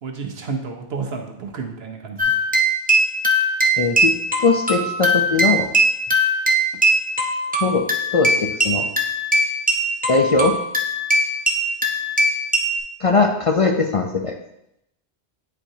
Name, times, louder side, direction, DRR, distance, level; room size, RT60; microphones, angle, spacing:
voice 1, 0.0-2.4, right 5 dB, 65° right, 3 dB, 1.0 m, -31 dB
sound 1, 2.2-12.8, right 1 dB, 10° right, 0.5 m, -20 dB
voice 2, 3.8-4.1 4.4-5.7 7.6-7.8 8.1-8.9 10.1-10.6 13.0-14.3, left 4 dB, 50° left, 2 dB, 0.4 m, -19 dB
8.8 x 4.4 x 2.7 m, 0.81 s
omnidirectional pair, 1.1 m